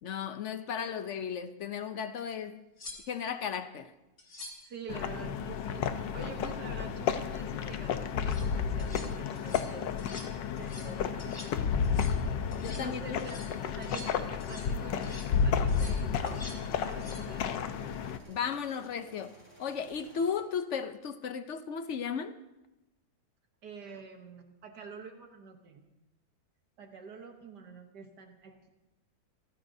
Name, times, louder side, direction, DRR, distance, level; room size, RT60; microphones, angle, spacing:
voice 1, 0.0-2.6 3.1-3.9 12.6-13.3 18.3-19.3 19.6-22.4, left 7 dB, 60° left, 0.7 m, -35 dB
sound 1, 2.2-2.3 2.8-3.3 4.2-4.7 8.1-8.5 8.8-9.1 9.4-9.7 10.0-10.3 10.6-10.9 11.2-11.6 11.8-12.2 12.5-12.9 13.2-14.8 15.0-15.3 15.7-16.6 16.9-17.3 19.9-20.1, left 2 dB, 35° left, 2.0 m, -47 dB
voice 2, 4.6-10.1 10.6-11.4 11.9-12.1 12.7-16.4 16.7-17.5 23.6-25.9 26.8-28.7, right 5 dB, 70° right, 1.6 m, -47 dB
sound 2, 4.9-18.2, left 7 dB, 80° left, 1.4 m, -32 dB
sound 3, 13.5-20.3, right 2 dB, 5° right, 7.1 m, -57 dB
28.0 x 14.0 x 2.7 m
omnidirectional pair, 1.9 m